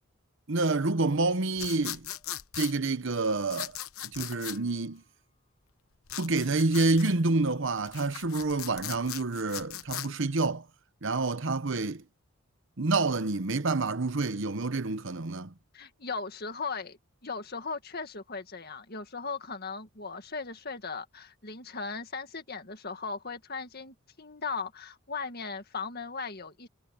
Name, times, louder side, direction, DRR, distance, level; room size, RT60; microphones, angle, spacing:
voice 1, 0.5-2.1 2.5-3.7 4.1-5.0 6.2-10.6 11.0-12.0 12.8-15.5, right 3 dB, 60° right, 1.0 m, -28 dB
sound 1, 1.6-2.7 3.5-4.6 6.1-7.1 7.8-10.1, left 12 dB, 80° left, 1.0 m, -39 dB
sound 2, 2.1-2.4 2.8-3.3 3.7-4.0 4.3-5.6 6.2-6.5 6.9-7.2, left 5 dB, 30° left, 5.4 m, -61 dB
voice 2, 15.7-26.7, left 4 dB, 45° left, 2.0 m, -38 dB
head